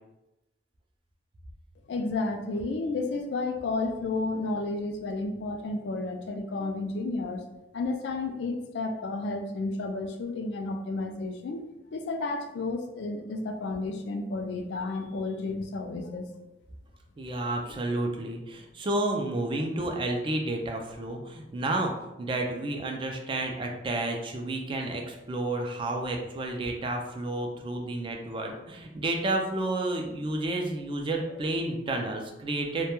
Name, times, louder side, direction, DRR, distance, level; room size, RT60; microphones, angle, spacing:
voice 1, 1.9-7.4 7.7-11.6 11.9-16.3 25.0-25.1, left 3 dB, 70° left, 5 dB, 0.3 m, -32 dB
voice 2, 17.2-32.9, right 2 dB, 30° right, 2 dB, 0.3 m, -31 dB
2.2 x 2.1 x 2.9 m, 0.96 s
head